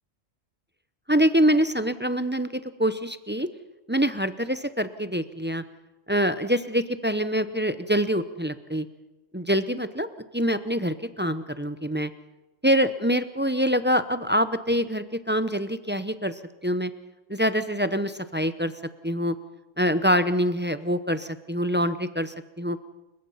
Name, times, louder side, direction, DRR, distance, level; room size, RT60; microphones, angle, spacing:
voice 1, 1.1-3.5 3.9-5.6 6.1-8.9 9.3-10.1 10.3-12.1 12.6-16.9 17.3-18.7 19.0-19.3 19.8-22.8, equal, 10° right, 11 dB, 0.5 m, -25 dB
29.5 x 15.5 x 5.7 m, 1.1 s
omnidirectional pair, 1.3 m